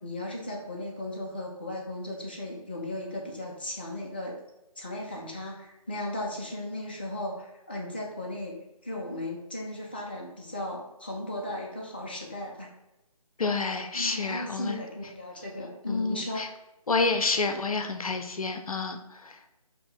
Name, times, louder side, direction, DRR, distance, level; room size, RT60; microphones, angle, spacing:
voice 1, 0.0-4.4 4.8-8.6 8.8-12.7 13.9-16.4, left 1 dB, 15° left, -2 dB, 0.4 m, -36 dB
voice 2, 13.4-14.8 15.9-16.5 16.9-19.4, left 3 dB, 70° left, 6 dB, 0.6 m, -29 dB
5.0 x 2.1 x 3.9 m, 0.97 s
figure-of-eight pair, 155°, 19 cm